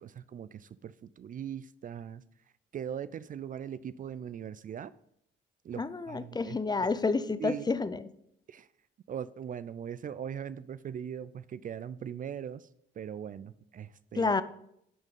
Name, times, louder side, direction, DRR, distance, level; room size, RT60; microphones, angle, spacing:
voice 1, 0.0-2.2 2.7-4.9 5.6-6.9 7.4-7.7 8.5-8.7 9.1-12.7 13.0-14.4, right 8 dB, 45° right, 16 dB, 0.4 m, -40 dB
voice 2, 5.8-8.0 14.2-14.4, left 4 dB, 20° left, 14 dB, 0.5 m, -29 dB
11.0 x 3.7 x 5.2 m, 0.73 s
cardioid pair, 90°, 20 cm